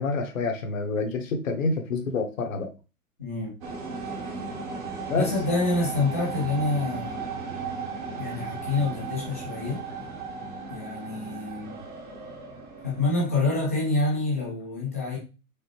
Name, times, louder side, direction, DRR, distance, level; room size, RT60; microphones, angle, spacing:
voice 1, 0.0-2.7 5.1-5.3, left 3 dB, 60° left, 1.2 m, -27 dB
voice 2, 3.2-3.6 5.1-7.3 8.2-10.1 10.7-11.8 12.8-15.2, left 2 dB, 10° left, 0.4 m, -27 dB
sound 1, 3.6-13.2, right 4 dB, 20° right, 0.8 m, -36 dB
4.9 x 2.7 x 3.0 m
hypercardioid pair, 145°, 45 cm